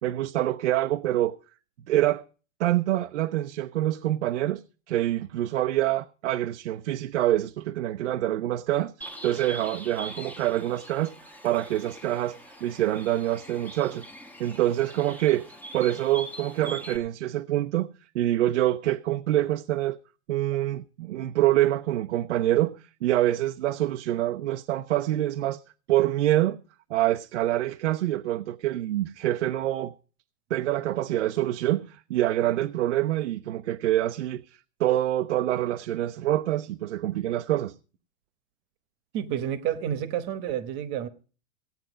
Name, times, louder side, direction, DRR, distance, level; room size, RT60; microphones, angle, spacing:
voice 1, 0.0-1.4 1.9-2.2 2.6-8.9 9.2-11.1 11.4-14.1 14.4-17.9 18.1-20.0 20.3-25.6 25.9-26.6 26.9-29.9 30.5-34.4 34.8-37.7, right 14 dB, 80° right, 0.7 m, -26 dB
Bird, 9.0-17.0, right 1 dB, 5° left, 1.0 m, -43 dB
voice 2, 39.1-41.1, right 10 dB, 35° right, 1.1 m, -30 dB
16.5 x 9.0 x 5.0 m
supercardioid pair, 150°, 34 cm